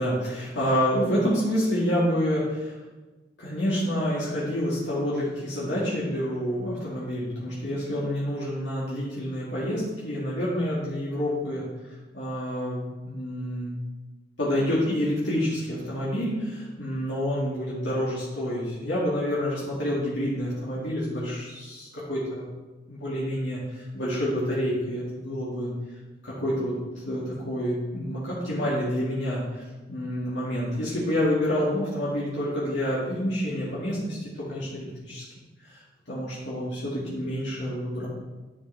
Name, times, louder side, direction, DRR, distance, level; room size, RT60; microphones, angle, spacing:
voice 1, 0.0-2.7 3.4-11.6 12.1-13.7 14.4-22.5 22.9-25.7 26.2-29.6 29.9-35.2 35.6-35.8 36.1-38.1, equal, 85° left, -8 dB, 2.3 m, -28 dB
11.0 x 7.3 x 3.5 m, 1.2 s
head